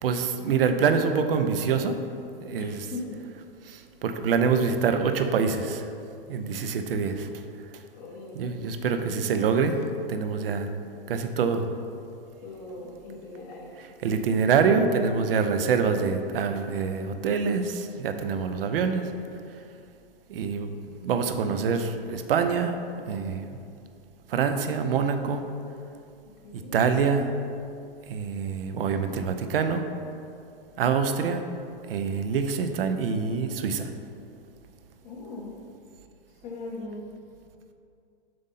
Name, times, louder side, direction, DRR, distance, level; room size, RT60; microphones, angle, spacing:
voice 1, 0.0-2.0 2.4-2.8 3.6-5.9 6.3-7.3 8.3-9.8 10.1-10.7 11.1-11.7 14.0-19.1 20.3-20.7 21.0-22.8 23.1-23.5 24.3-25.5 26.5-27.3 28.1-29.8 30.8-31.4 31.9-33.9, right 5 dB, 70° right, 7 dB, 0.7 m, -25 dB
voice 2, 2.5-3.1 7.9-8.8 12.4-13.8 26.2-26.7 35.0-35.5 36.4-37.1, left 2 dB, 40° left, -3 dB, 1.5 m, -40 dB
7.6 x 2.6 x 5.6 m, 2.5 s
hypercardioid pair, 150°, 30 cm